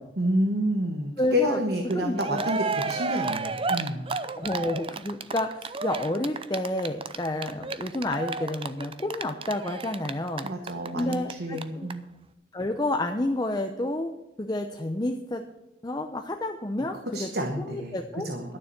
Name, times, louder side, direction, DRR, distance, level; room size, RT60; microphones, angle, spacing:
voice 1, 0.2-4.0 10.4-12.1 17.1-18.0 18.2-18.6, equal, 55° right, 4 dB, 1.2 m, -29 dB
voice 2, 1.2-1.6 1.9-2.4 4.4-10.5 10.9-11.9 12.5-14.1 14.4-15.4 15.8-17.3 17.6-18.3, left 1 dB, 20° left, 4 dB, 0.7 m, -30 dB
Cheering, 1.9-2.0 2.2-11.3 11.6-11.7 11.9-12.0, right 4 dB, 30° right, 0.5 m, -32 dB
12.0 x 6.9 x 8.7 m, 0.94 s
head